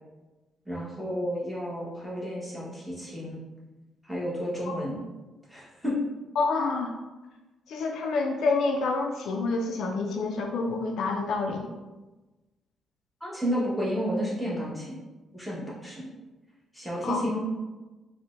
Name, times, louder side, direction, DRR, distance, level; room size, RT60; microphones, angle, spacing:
voice 1, 0.7-3.4 4.0-5.0 5.5-6.0 13.2-15.0 15.3-16.1 16.7-17.4, equal, 5° left, -7 dB, 1.2 m, -31 dB
voice 2, 6.4-6.9 7.7-11.7 17.0-17.2, left 3 dB, 75° left, 2 dB, 0.3 m, -27 dB
4.3 x 2.1 x 2.5 m, 1.1 s
cardioid pair, 90°, 0 cm